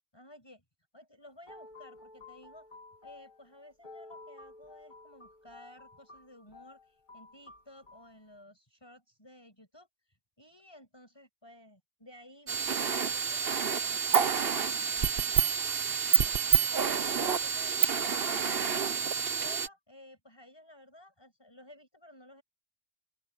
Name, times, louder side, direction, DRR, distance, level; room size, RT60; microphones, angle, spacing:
voice 1, 0.1-0.6 0.9-2.7 3.0-19.1 19.4-22.4, left 1 dB, 20° left, 6.8 m, -55 dB
sound 1, 1.2-8.1, left 3 dB, 45° left, 3.3 m, -52 dB
sound 2, 12.5-19.7, right 6 dB, 60° right, 1.2 m, -28 dB
open air
omnidirectional pair, 1.1 m